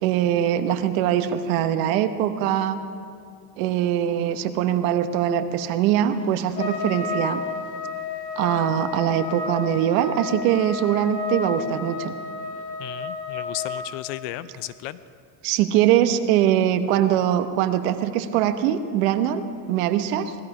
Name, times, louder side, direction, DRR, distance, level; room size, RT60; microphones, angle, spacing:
voice 1, 0.0-2.8 3.6-7.4 8.4-12.1 15.4-20.3, right 10 dB, 60° right, 10 dB, 1.1 m, -22 dB
Trumpet, 6.6-13.9, left 5 dB, 90° left, 2.7 m, -31 dB
voice 2, 12.8-15.0, left 15 dB, 45° left, 15 dB, 0.5 m, -34 dB
18.5 x 13.5 x 4.9 m, 2.3 s
supercardioid pair, 130°, 48 cm